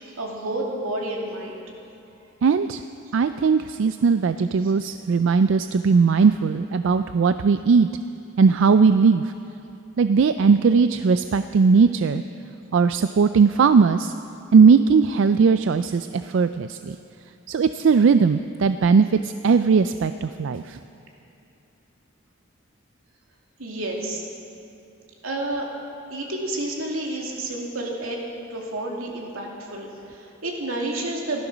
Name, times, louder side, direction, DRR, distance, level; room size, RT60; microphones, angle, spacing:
voice 1, 0.0-1.6 4.6-4.7 23.6-24.2 25.2-25.7 26.1-28.2 28.5-31.4, right 1 dB, 85° right, -1 dB, 2.5 m, -30 dB
voice 2, 2.4-2.8 3.1-7.9 8.4-9.3 10.0-12.2 12.7-14.1 14.5-17.0 17.5-20.8, right 5 dB, 65° right, 10 dB, 0.4 m, -18 dB
15.5 x 13.0 x 6.2 m, 2.8 s
head